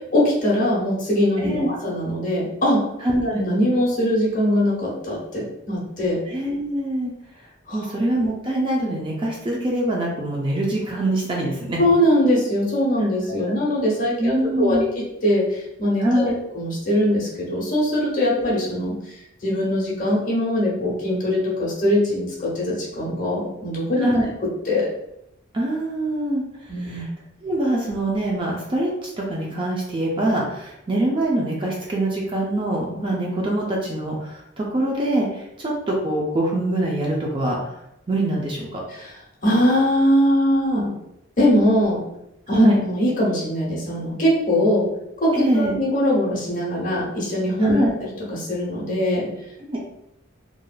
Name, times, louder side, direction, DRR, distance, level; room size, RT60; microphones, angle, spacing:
voice 1, 0.1-2.8 3.2-6.2 7.7-7.8 11.8-19.0 19.4-24.1 24.7-24.9 26.7-27.1 38.9-39.1 39.4-40.9 41.4-42.0 42.5-44.9 45.2-49.3, equal, 40° left, -5 dB, 1.0 m, -21 dB
voice 2, 1.4-1.7 3.0-3.4 6.3-7.1 7.7-11.8 13.4-13.5 14.2-14.9 16.0-16.3 24.0-24.3 25.5-26.4 26.8-27.1 27.4-37.6 38.1-38.8 42.5-42.8 45.3-45.8 47.6-47.9 49.7-49.8, right 1 dB, 25° right, -2 dB, 0.4 m, -24 dB
3.1 x 2.5 x 2.3 m, 0.83 s
head